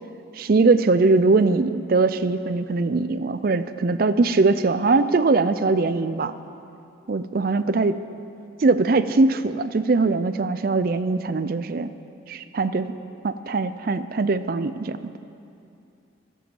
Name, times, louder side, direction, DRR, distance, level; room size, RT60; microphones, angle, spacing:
voice 1, 0.4-6.3 7.1-8.0 8.6-11.9 12.3-12.9 13.2-15.1, right 3 dB, 50° right, 12 dB, 0.4 m, -21 dB
15.5 x 7.6 x 7.1 m, 2.6 s
head